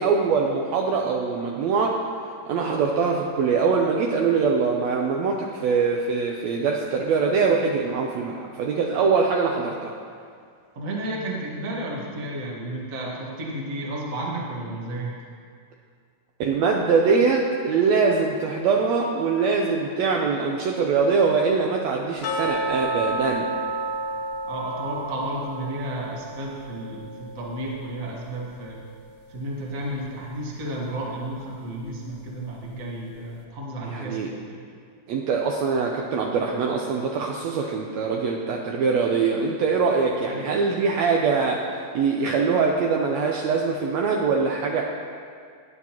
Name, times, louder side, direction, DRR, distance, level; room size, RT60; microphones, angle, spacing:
voice 1, 0.0-2.0 2.4-9.9 16.4-23.5 33.8-34.3 35.1-44.8, right 5 dB, 90° right, 0 dB, 1.5 m, -23 dB
voice 2, 10.7-15.1 24.4-28.8 29.3-34.6 40.3-40.4, right 1 dB, 45° right, -3 dB, 1.1 m, -32 dB
sound 1, 22.2-29.1 29.4-29.5 30.0-30.1 30.6-30.7, right 1 dB, 80° left, 1.2 m, -32 dB
16.0 x 9.5 x 3.0 m, 2.1 s
omnidirectional pair, 3.9 m